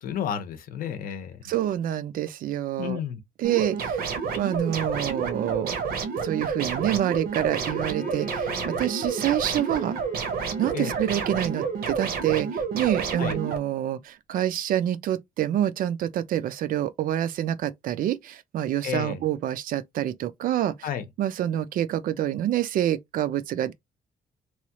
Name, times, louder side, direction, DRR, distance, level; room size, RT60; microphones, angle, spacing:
voice 1, 0.0-1.4 2.8-3.2 10.7-10.9 13.2-13.4 18.8-19.2 20.8-21.0, left 8 dB, 65° left, 0.7 m, -31 dB
voice 2, 1.4-3.0 3.4-4.1 4.4-5.7 6.2-10.0 10.6-20.9 21.2-23.7, right 12 dB, 60° right, 0.4 m, -27 dB
sound 1, 3.4-13.6, right 5 dB, 80° right, 0.8 m, -29 dB
Bowed string instrument, 7.4-12.1, left 3 dB, 15° left, 0.7 m, -43 dB
3.0 x 2.3 x 2.8 m
cardioid pair, 165°, 16 cm